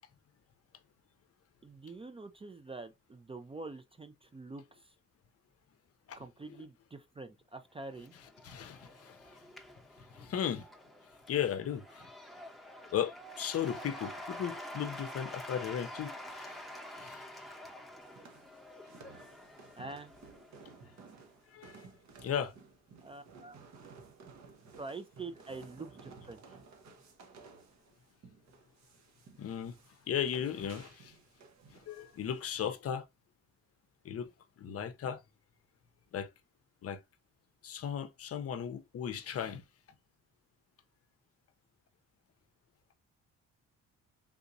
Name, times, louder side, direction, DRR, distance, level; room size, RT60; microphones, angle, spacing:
voice 1, 1.6-5.0 6.2-8.1 19.8-20.1 23.0-23.6 24.8-26.4, right 3 dB, 20° right, 0.4 m, -46 dB
Cheering / Applause / Crowd, 7.8-21.3, left 1 dB, ahead, 0.8 m, -48 dB
voice 2, 8.4-9.4 10.1-10.7 11.3-12.1 12.9-16.6 17.0-17.2 21.5-21.9 22.2-22.5 29.4-29.8 30.1-31.2 31.7-33.0 34.0-34.3 34.6-35.2 36.1-36.3 36.8-37.0 37.6-39.6, left 9 dB, 50° left, 0.6 m, -36 dB
sound 1, 18.0-32.7, right 4 dB, 65° right, 0.9 m, -56 dB
3.6 x 2.8 x 2.5 m
cardioid pair, 90°, 30 cm